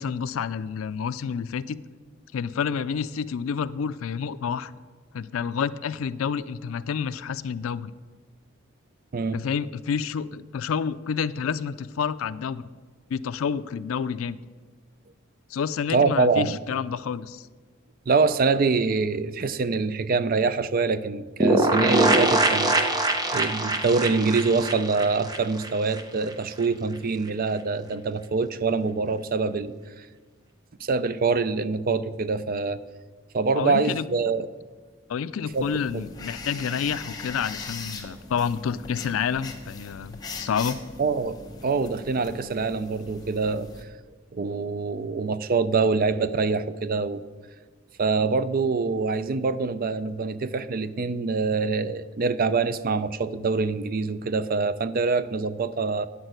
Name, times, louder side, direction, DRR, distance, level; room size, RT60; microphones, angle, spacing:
voice 1, 0.0-1.8 2.3-4.7 5.1-7.9 9.3-12.6 13.1-14.4 15.5-17.5 33.5-34.0 35.1-40.8, left 6 dB, 80° left, 15 dB, 0.4 m, -29 dB
voice 2, 15.9-16.6 18.1-23.1 23.3-30.1 30.8-32.8 33.3-34.5 35.5-35.7 35.9-36.0 41.0-43.7 44.3-47.2 48.0-56.1, right 4 dB, 45° right, 14 dB, 0.4 m, -25 dB
sound 1, 21.4-26.0 26.3-26.4 26.6-26.7, right 2 dB, 20° right, 0.8 m, -23 dB
sound 2, 35.5-43.8, left 3 dB, 20° left, 1.1 m, -40 dB
9.5 x 6.1 x 7.9 m, 1.4 s
head